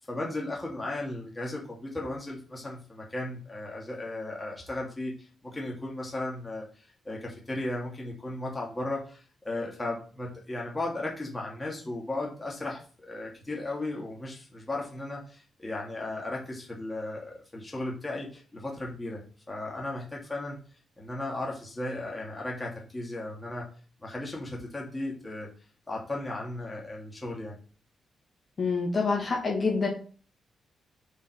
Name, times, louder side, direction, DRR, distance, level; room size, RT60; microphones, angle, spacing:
voice 1, 0.1-5.1 5.4-6.7 7.0-20.6 21.0-23.6 24.0-25.5 25.9-27.6, left 2 dB, 15° left, -2 dB, 2.3 m, -35 dB
voice 2, 28.6-29.9, left 4 dB, 35° left, -1 dB, 2.1 m, -26 dB
5.8 x 5.5 x 5.7 m, 0.39 s
wide cardioid pair, 155°, 0 cm